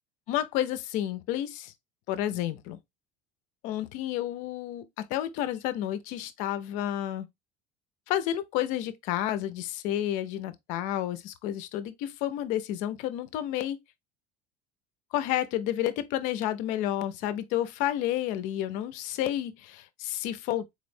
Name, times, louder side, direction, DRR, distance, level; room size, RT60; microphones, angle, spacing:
voice 1, 0.3-1.7 2.1-2.8 3.6-7.3 8.1-13.8 15.1-20.8, left 12 dB, 60° left, 0.5 m, -30 dB
4.0 x 3.1 x 2.6 m
cardioid pair, 160°, 15 cm